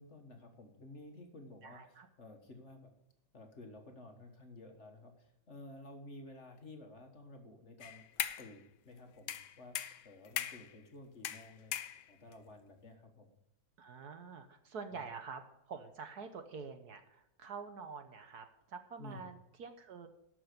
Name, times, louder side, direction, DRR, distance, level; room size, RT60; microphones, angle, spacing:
voice 1, 0.0-2.9 3.3-8.0 8.4-9.8 10.0-11.8 12.1-13.4 14.9-15.1 19.0-19.3, left 2 dB, 40° left, 4 dB, 1.5 m, -53 dB
voice 2, 1.6-2.1 13.8-15.4 15.7-20.1, right 5 dB, 60° right, 8 dB, 1.3 m, -47 dB
sound 1, 7.8-8.5 9.3-10.7 11.2-12.3, left 11 dB, 70° left, 1.3 m, -39 dB
12.5 x 6.3 x 6.6 m, 0.87 s
omnidirectional pair, 2.1 m